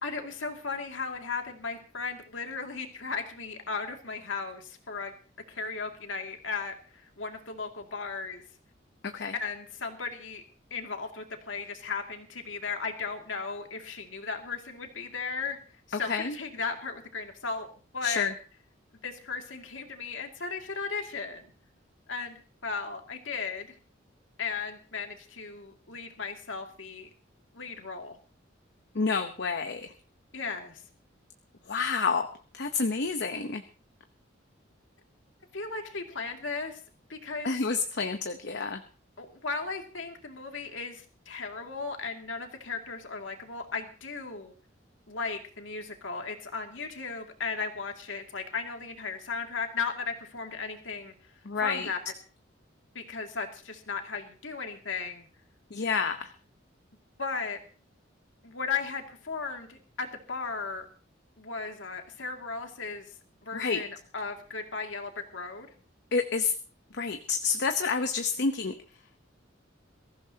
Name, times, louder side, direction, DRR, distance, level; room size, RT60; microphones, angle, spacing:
voice 1, 0.0-5.1 5.5-8.4 9.4-10.4 10.7-15.6 15.9-17.7 17.9-18.3 19.0-21.5 22.1-23.7 24.4-27.1 27.5-28.2 30.3-30.8 35.5-36.8 37.1-37.6 39.2-44.5 45.1-51.1 51.6-52.0 52.9-55.3 57.2-57.6 58.4-60.9 61.4-63.1 63.4-65.7, left 4 dB, 80° left, 3 dB, 2.4 m, -36 dB
voice 2, 9.0-9.3 15.9-16.4 18.0-18.3 28.9-29.9 31.6-32.3 32.5-33.6 37.4-38.8 51.4-51.9 55.7-56.3 63.5-63.8 66.1-66.5 66.9-68.7, left 5 dB, 60° left, 7 dB, 0.9 m, -29 dB
22.0 x 15.0 x 2.9 m, 0.37 s
head